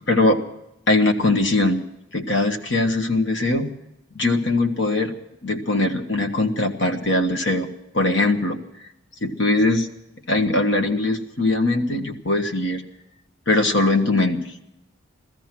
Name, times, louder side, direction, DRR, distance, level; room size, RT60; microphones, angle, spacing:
voice 1, 0.1-0.4 0.9-1.8 2.1-3.8 4.1-5.1 5.4-7.7 7.9-8.6 9.2-9.9 10.3-12.8 13.5-14.4, left 2 dB, 60° left, 5 dB, 1.5 m, -21 dB
16.5 x 14.0 x 6.1 m, 0.83 s
head